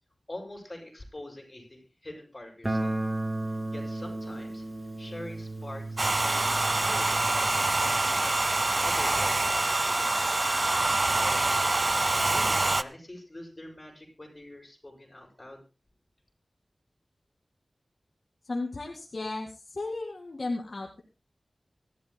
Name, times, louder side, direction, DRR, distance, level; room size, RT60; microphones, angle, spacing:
voice 1, 0.3-2.9 3.4-4.7 5.0-8.4 8.8-11.6 12.1-15.6, left 1 dB, 30° left, 0 dB, 7.7 m, -45 dB
Guitar, 2.6-9.4, right 2 dB, 25° right, 2.6 m, -35 dB
Domestic sounds home sounds, 6.0-12.8, right 2 dB, 45° right, 0.7 m, -25 dB
voice 2, 18.4-21.0, left 2 dB, 60° left, 1 dB, 2.2 m, -34 dB
24.5 x 13.0 x 2.2 m, 0.29 s
wide cardioid pair, 50°, 0 cm